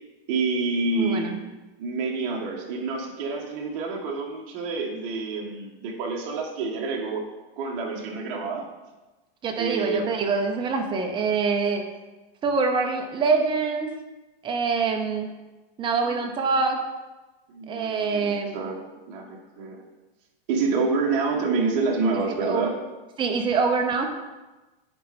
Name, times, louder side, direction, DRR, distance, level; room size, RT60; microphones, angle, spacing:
voice 1, 0.3-1.4 1.8-7.2 7.6-8.7 9.6-10.1 16.0-16.2 17.5-18.8 19.1-19.8 20.5-22.7, right 4 dB, 45° right, 0 dB, 1.6 m, -27 dB
voice 2, 0.9-1.4 9.4-11.8 12.4-13.9 14.4-15.3 15.8-16.8 17.7-18.6 22.3-22.7 23.2-24.1, right 4 dB, 15° right, 4 dB, 0.7 m, -25 dB
9.7 x 4.3 x 4.3 m, 1.1 s
supercardioid pair, 155°, 29 cm